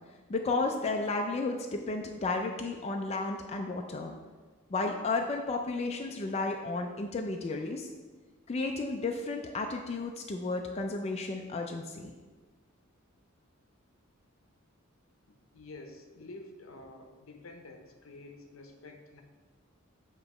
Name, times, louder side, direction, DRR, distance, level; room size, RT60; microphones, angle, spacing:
voice 1, 0.3-4.2 4.7-7.9 8.5-12.1, left 3 dB, 30° left, 3 dB, 0.3 m, -33 dB
voice 2, 15.5-19.2, left 2 dB, 70° left, 5 dB, 0.7 m, -49 dB
7.5 x 2.9 x 4.8 m, 1.3 s
head